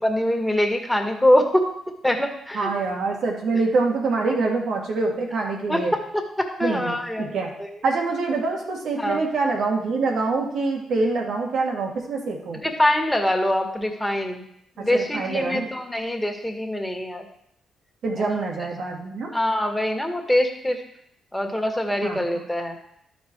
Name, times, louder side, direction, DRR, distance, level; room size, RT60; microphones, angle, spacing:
voice 1, 0.0-1.6 2.0-2.7 5.7-5.8 6.1-7.3 7.6-7.7 9.0-9.2 12.6-14.4 14.8-17.3 18.2-18.3 19.3-20.8 21.3-22.8, left 1 dB, 5° left, 3 dB, 1.9 m, -23 dB
voice 2, 2.5-5.9 6.6-7.5 7.8-12.6 14.8-15.7 18.0-19.3 22.0-22.2, right 3 dB, 70° right, 0 dB, 2.1 m, -25 dB
12.0 x 5.3 x 4.7 m, 0.76 s
supercardioid pair, 60°, 0 cm